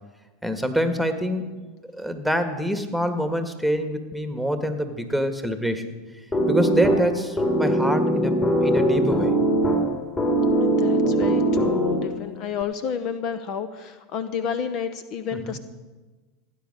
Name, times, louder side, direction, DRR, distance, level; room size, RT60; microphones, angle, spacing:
voice 1, 0.4-1.5 1.9-5.8 6.5-9.3 15.4-15.6, equal, ahead, 7 dB, 1.7 m, -26 dB
sound 1, 6.3-12.3, right 1 dB, 25° left, 3.4 m, -21 dB
voice 2, 10.8-15.6, left 7 dB, 50° left, 12 dB, 0.9 m, -30 dB
16.0 x 9.5 x 6.7 m, 1.3 s
hypercardioid pair, 85°, 0 cm